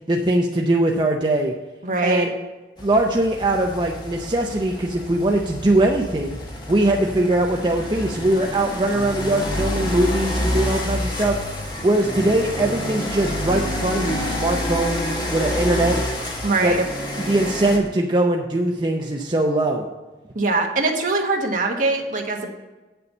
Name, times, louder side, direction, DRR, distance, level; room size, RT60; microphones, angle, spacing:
voice 1, 0.1-1.5 2.0-2.3 2.8-6.4 6.7-16.0 16.6-16.8 17.2-19.9, right 1 dB, 25° right, 1 dB, 0.6 m, -21 dB
voice 2, 1.8-2.2 16.4-16.8 20.3-22.5, right 3 dB, 45° right, 2 dB, 1.4 m, -22 dB
sound 1, 2.8-17.8, left 1 dB, 25° left, 1.5 m, -28 dB
8.4 x 6.8 x 5.5 m, 1.2 s
head